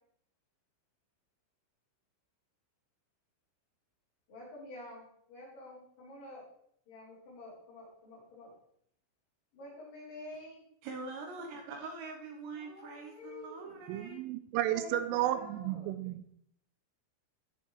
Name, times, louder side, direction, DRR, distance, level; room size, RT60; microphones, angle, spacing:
voice 1, 4.3-6.4 6.9-8.5 9.5-10.6 12.5-13.8 14.7-16.0, left 2 dB, 55° left, 6.9 m, -49 dB
voice 2, 10.8-14.2, right 3 dB, 75° right, 2.9 m, -44 dB
voice 3, 13.9-16.3, right 13 dB, 90° right, 3.2 m, -33 dB
16.0 x 6.9 x 3.2 m
omnidirectional pair, 5.6 m